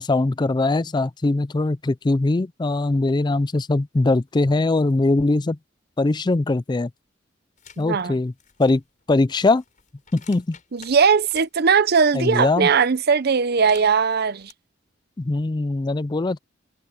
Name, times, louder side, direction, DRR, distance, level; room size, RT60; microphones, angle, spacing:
voice 1, 0.0-5.6 6.0-6.9 7.8-8.3 8.6-8.8 9.1-9.6 10.1-10.6 12.1-12.7 15.2-16.4, left 2 dB, 20° left, 0.4 m, -21 dB
sound 1, 7.6-7.8 8.3-11.5 13.4-14.5, left 7 dB, 40° left, 5.6 m, -49 dB
voice 2, 7.8-8.2 10.7-14.5, right 5 dB, 55° right, 0.7 m, -19 dB
head